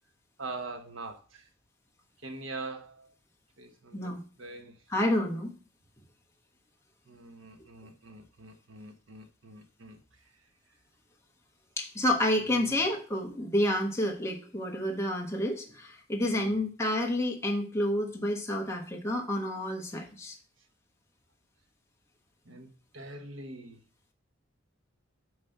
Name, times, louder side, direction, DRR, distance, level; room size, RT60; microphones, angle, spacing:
voice 1, 0.4-1.5 2.2-3.1 3.6-4.1 4.4-4.7 7.1-10.0 12.4-12.7 16.3-16.6 22.4-22.7 22.9-23.8, right 3 dB, 75° right, 1.4 m, -43 dB
voice 2, 4.9-5.5 11.8-20.3, left 1 dB, 15° left, 1.3 m, -29 dB
9.3 x 3.2 x 6.6 m
head